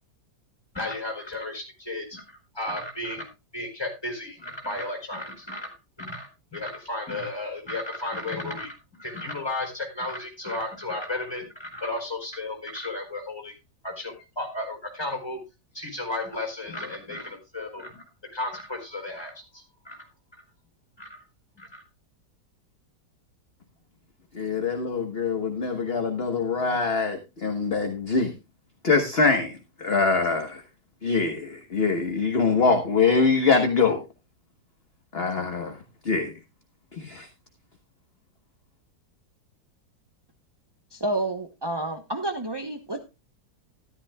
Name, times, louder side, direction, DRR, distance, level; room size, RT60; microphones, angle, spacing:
voice 1, 0.7-13.5 13.8-15.4 15.7-18.0 18.3-20.0 21.0-21.2 21.6-21.8, left 2 dB, 15° left, 4.1 m, -34 dB
voice 2, 24.3-28.3 28.8-30.6 31.0-34.0 35.1-36.3 36.9-37.3, left 4 dB, 35° left, 1.3 m, -24 dB
voice 3, 40.9-43.0, right 2 dB, 25° right, 0.5 m, -29 dB
13.5 x 12.0 x 2.3 m
omnidirectional pair, 1.9 m